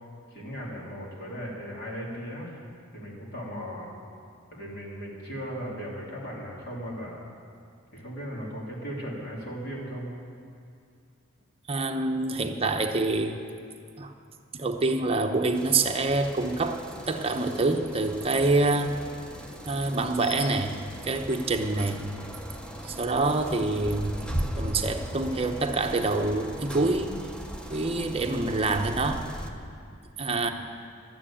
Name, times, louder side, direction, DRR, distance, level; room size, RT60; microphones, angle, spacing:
voice 1, 0.3-2.6 2.9-4.0 4.5-7.3 7.9-10.1 21.6-21.7 30.2-30.5, equal, 50° left, -4 dB, 3.2 m, -37 dB
voice 2, 11.7-13.4 14.0-14.1 14.5-18.9 19.6-20.7 21.0-22.0 22.8-24.1 24.6-27.1 27.7-29.2 30.2-30.5, right 2 dB, 30° right, 4 dB, 0.8 m, -26 dB
sound 1, 15.5-29.5, equal, 5° left, 0.8 m, -38 dB
12.5 x 9.5 x 8.7 m, 2.4 s
head